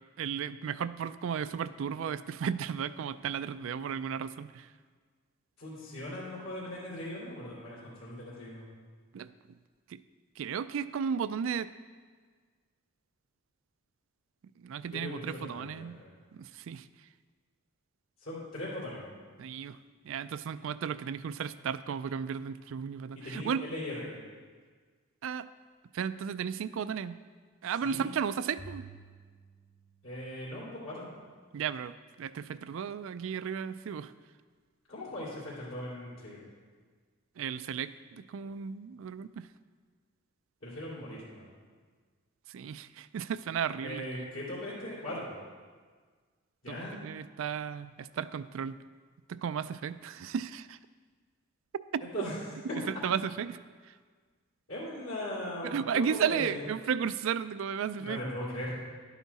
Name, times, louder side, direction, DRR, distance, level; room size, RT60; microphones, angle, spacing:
voice 1, 0.2-4.7 9.1-9.3 9.9-10.0 10.4-11.7 14.6-16.0 16.3-16.9 19.4-19.8 20.0-23.6 25.2-25.4 25.9-27.2 27.6-28.8 31.5-31.9 32.2-34.1 37.4-39.5 42.5-44.0 46.7-46.8 47.0-48.8 49.3-50.8 51.9-52.2 52.9-53.6 55.6-58.2, right 7 dB, 65° right, 14 dB, 0.3 m, -34 dB
voice 2, 5.6-8.7 14.9-16.1 18.2-19.1 23.1-24.1 27.8-28.1 30.0-31.1 34.9-36.4 40.6-41.5 43.8-45.4 46.6-47.0 52.1-52.4 54.7-56.6 58.0-58.7, left 1 dB, 70° left, -8 dB, 2.5 m, -39 dB
Bowed string instrument, 28.6-31.0, right 3 dB, 40° left, 1.5 m, -52 dB
11.0 x 8.2 x 4.1 m, 1.5 s
head